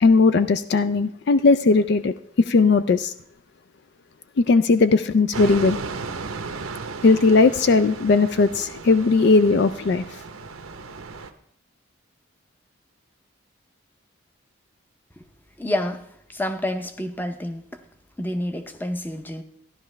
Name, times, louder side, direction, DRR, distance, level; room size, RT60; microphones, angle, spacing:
voice 1, 0.0-3.1 4.4-5.8 7.0-10.0, left 3 dB, 50° left, 0.3 m, -18 dB
sound 1, 5.3-11.3, right 4 dB, 90° right, 0.8 m, -35 dB
voice 2, 15.6-16.1 16.3-17.6 18.2-19.4, left 1 dB, 10° left, 0.7 m, -28 dB
14.0 x 11.0 x 3.2 m
head